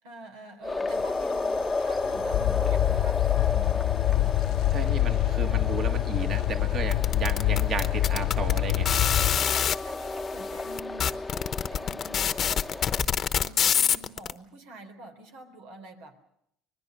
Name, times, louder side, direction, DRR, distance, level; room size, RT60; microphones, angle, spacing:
voice 1, 0.0-3.9 9.8-11.2 11.7-12.3 13.4-16.2, right 2 dB, 85° right, 6 dB, 3.8 m, -46 dB
sound 1, 0.6-13.1, left 3 dB, 15° left, 0.9 m, -33 dB
sound 2, 0.9-9.4, left 14 dB, 75° left, 0.9 m, -26 dB
voice 2, 4.7-8.9, right 6 dB, 45° right, 6 dB, 1.8 m, -34 dB
sound 3, 6.9-9.8 10.4-10.5 10.8-14.3, left 8 dB, 40° left, 0.9 m, -25 dB
25.0 x 20.5 x 6.7 m, 0.75 s
supercardioid pair, 110°, 0 cm